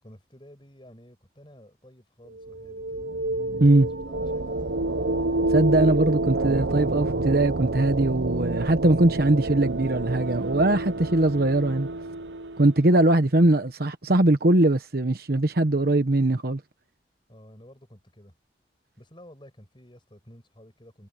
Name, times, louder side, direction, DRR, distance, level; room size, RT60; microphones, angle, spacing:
voice 1, 0.0-3.1 3.9-5.1 17.3-18.4 19.0-21.1, equal, 25° left, 6.4 m, -51 dB
sound 1, 2.3-12.9, right 2 dB, 80° right, 0.8 m, -28 dB
voice 2, 5.5-11.9 12.6-16.6, right 2 dB, 55° right, 1.2 m, -21 dB
head